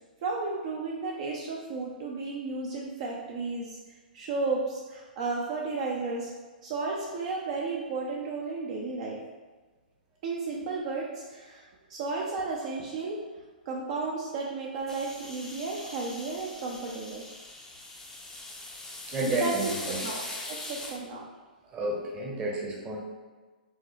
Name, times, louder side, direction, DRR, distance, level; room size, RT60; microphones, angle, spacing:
voice 1, 0.2-3.8 4.1-6.3 6.6-9.2 10.2-13.2 13.7-17.3 19.4-21.2, right 3 dB, 45° right, -2 dB, 0.6 m, -33 dB
sound 1, 14.9-21.0, left 2 dB, 10° left, 0.6 m, -41 dB
voice 2, 19.1-20.0 21.7-23.0, right 2 dB, 20° right, -1 dB, 0.9 m, -30 dB
4.7 x 3.0 x 3.0 m, 1.3 s
figure-of-eight pair, 115°, 5 cm